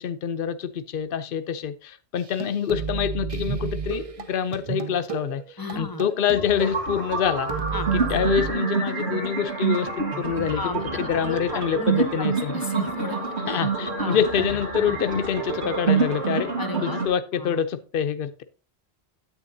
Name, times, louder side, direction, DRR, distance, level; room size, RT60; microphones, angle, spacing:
voice 1, 0.0-7.5 7.9-12.5 13.5-16.5 16.8-18.4, left 8 dB, 60° left, 0.8 m, -26 dB
sound 1, 2.2-8.5, right 6 dB, 35° right, 0.7 m, -33 dB
voice 2, 5.6-6.0 7.7-7.9 10.5-13.6 14.0-14.2 16.3-17.0 17.3-17.6, left 3 dB, 20° left, 0.8 m, -35 dB
sound 2, 6.3-17.1, right 5 dB, 80° right, 2.1 m, -27 dB
9.8 x 8.3 x 2.7 m
omnidirectional pair, 1.1 m